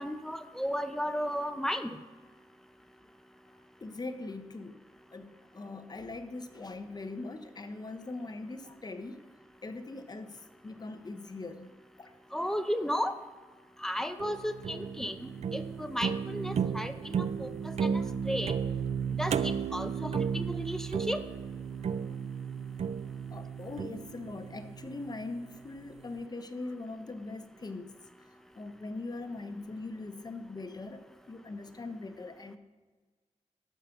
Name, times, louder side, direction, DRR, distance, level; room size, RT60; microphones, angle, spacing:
voice 1, 0.0-2.0 12.3-13.2 13.8-17.1 17.4-18.5 19.2-21.2, equal, 5° left, 9 dB, 0.6 m, -34 dB
voice 2, 3.8-4.8 5.1-9.3 9.6-11.7 12.0-12.1 22.1-22.2 23.3-27.9 28.5-32.6, left 2 dB, 35° left, 9 dB, 0.8 m, -41 dB
sound 1, 14.2-25.4, right 7 dB, 60° right, 0.4 m, -34 dB
11.5 x 5.0 x 7.2 m, 1.3 s
wide cardioid pair, 120°, 12 cm